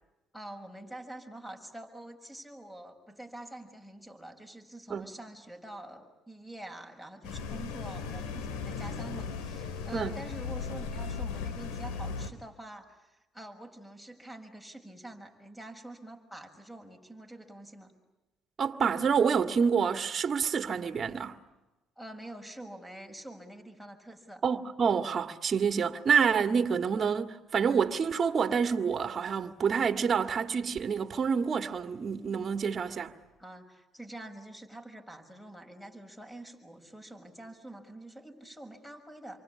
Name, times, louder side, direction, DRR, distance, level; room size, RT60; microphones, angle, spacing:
voice 1, 0.3-17.9 22.0-24.4 33.4-39.4, right 1 dB, 5° left, 6.3 m, -46 dB
sound 1, 7.2-12.3, left 5 dB, 90° left, 2.2 m, -37 dB
voice 2, 18.6-21.4 24.4-33.1, right 6 dB, 45° right, 1.9 m, -28 dB
29.0 x 24.0 x 8.5 m
cardioid pair, 90°, 0 cm